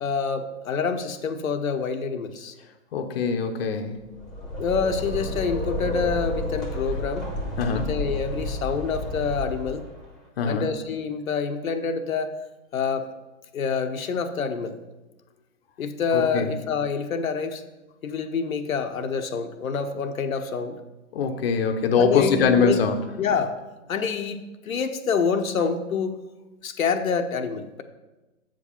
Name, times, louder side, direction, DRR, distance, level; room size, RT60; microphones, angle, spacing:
voice 1, 0.0-2.5 4.6-7.3 7.7-9.9 10.5-12.4 12.7-13.1 13.5-14.8 15.8-17.6 18.0-20.8 22.0-22.8 23.2-23.6 23.9-26.2 26.6-27.8, left 5 dB, 75° left, 6 dB, 0.9 m, -27 dB
voice 2, 2.9-4.0 7.6-7.9 10.4-10.7 16.1-16.5 21.1-23.0, left 5 dB, 45° left, 6 dB, 0.8 m, -23 dB
sound 1, 4.0-10.1, left 1 dB, ahead, 1.0 m, -31 dB
7.8 x 5.2 x 5.5 m, 1.1 s
hypercardioid pair, 150°, 41 cm